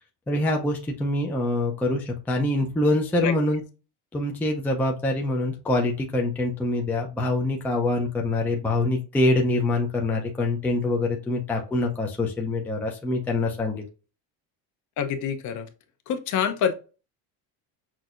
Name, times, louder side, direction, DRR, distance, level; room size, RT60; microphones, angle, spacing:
voice 1, 0.3-3.6 4.1-13.9, left 2 dB, 5° left, 0 dB, 0.4 m, -25 dB
voice 2, 15.0-15.7 16.1-16.7, left 7 dB, 45° left, 8 dB, 0.7 m, -26 dB
6.0 x 2.7 x 2.4 m, 0.32 s
cardioid pair, 160°, 41 cm